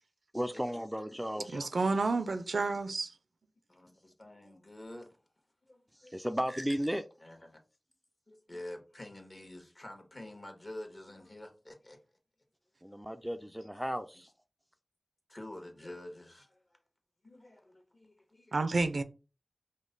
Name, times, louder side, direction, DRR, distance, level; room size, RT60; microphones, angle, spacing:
voice 1, 0.3-1.6 5.9-7.0 12.8-14.3, equal, 5° right, 0.3 m, -35 dB
voice 2, 1.5-3.1 18.5-19.0, right 3 dB, 85° right, 0.4 m, -30 dB
voice 3, 3.7-5.2 5.7-6.1 7.2-7.6 8.3-12.0 12.8-13.2 15.3-16.8 17.2-18.7, left 1 dB, 45° left, 1.3 m, -48 dB
5.0 x 2.1 x 3.9 m
wide cardioid pair, 55°, 0 cm